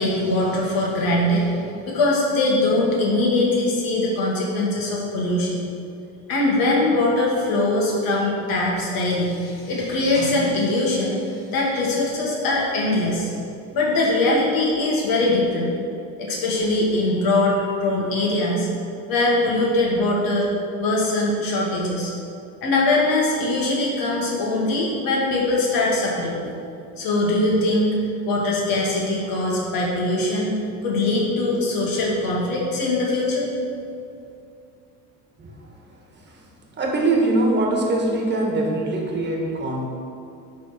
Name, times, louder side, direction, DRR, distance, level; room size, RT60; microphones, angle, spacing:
voice 1, 0.0-5.6 6.3-13.3 13.7-15.7 16.2-18.7 19.1-20.5 20.8-22.1 22.6-26.4 27.0-27.9 28.2-33.5, left 2 dB, 65° left, -4 dB, 1.8 m, -22 dB
voice 2, 36.8-39.8, right 2 dB, 30° right, 0 dB, 1.4 m, -22 dB
11.0 x 3.7 x 5.0 m, 2.5 s
cardioid pair, 135°, 38 cm